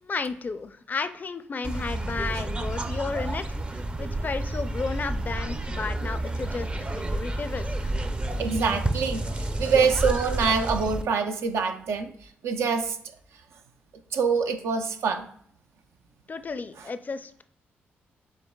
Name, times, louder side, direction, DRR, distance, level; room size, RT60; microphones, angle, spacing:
voice 1, 0.0-7.9 16.3-17.4, left 4 dB, 40° left, 11 dB, 0.4 m, -33 dB
sound 1, 1.6-11.0, right 1 dB, 25° right, 0.5 m, -30 dB
voice 2, 8.4-12.1 12.4-13.0 14.1-15.3, right 5 dB, 80° right, 6 dB, 0.5 m, -25 dB
7.2 x 3.1 x 2.3 m, 0.63 s
cardioid pair, 60°, 4 cm